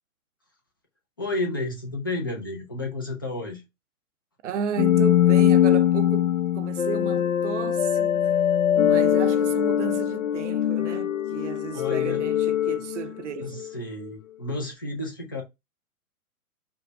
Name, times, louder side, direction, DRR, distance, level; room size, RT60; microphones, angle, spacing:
voice 1, 1.2-3.6 11.7-12.2 13.4-15.4, left 2 dB, 15° left, 0.4 m, -31 dB
voice 2, 4.4-8.4 8.8-13.6, right 7 dB, 55° right, 0.6 m, -34 dB
sound 1, 4.8-13.7, left 10 dB, 60° left, 0.7 m, -22 dB
5.2 x 2.2 x 4.4 m
figure-of-eight pair, 130°, 44 cm